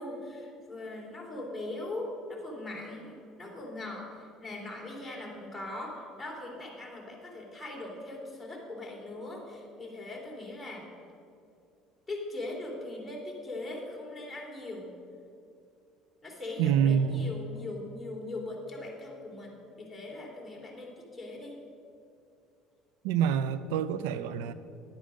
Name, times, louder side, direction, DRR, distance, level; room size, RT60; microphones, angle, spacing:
voice 1, 0.0-10.9 12.1-14.9 16.2-19.5 19.8-21.5, left 2 dB, 5° left, -3 dB, 2.9 m, -40 dB
voice 2, 16.6-17.3 23.0-24.5, right 8 dB, 90° right, 14 dB, 0.4 m, -27 dB
11.5 x 8.8 x 5.1 m, 2.5 s
supercardioid pair, 110°, 0 cm